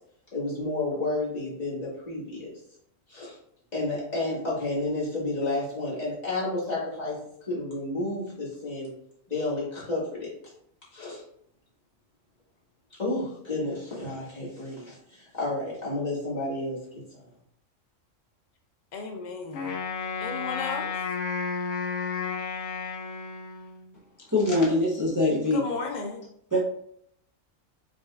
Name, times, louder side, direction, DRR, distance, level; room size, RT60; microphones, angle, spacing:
voice 1, 0.3-2.5 3.1-3.4 3.7-7.2 7.5-8.9 9.3-10.3 10.9-11.2 12.9-17.2, left 2 dB, 35° left, -8 dB, 2.0 m, -31 dB
voice 2, 18.9-19.7 20.2-20.9 25.5-26.2, left 4 dB, 80° left, 4 dB, 0.4 m, -34 dB
Wind instrument woodwind instrument, 19.5-23.9, left 5 dB, 65° left, 1.0 m, -32 dB
voice 3, 24.3-25.7 26.5-26.6, left 1 dB, 20° right, -6 dB, 0.8 m, -23 dB
5.1 x 3.9 x 2.4 m, 0.69 s
omnidirectional pair, 1.3 m